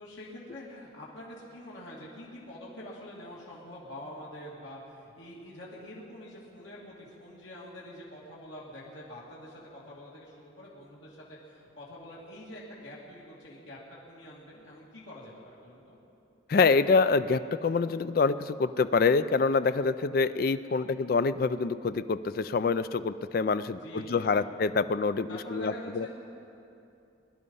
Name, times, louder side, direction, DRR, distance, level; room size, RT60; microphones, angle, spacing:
voice 1, 0.0-13.8 14.1-16.0 23.8-24.4 25.3-26.1, left 1 dB, 75° left, -6 dB, 2.6 m, -45 dB
voice 2, 16.5-26.1, left 4 dB, 50° left, 13 dB, 0.3 m, -26 dB
21.5 x 11.0 x 5.5 m, 2.7 s
head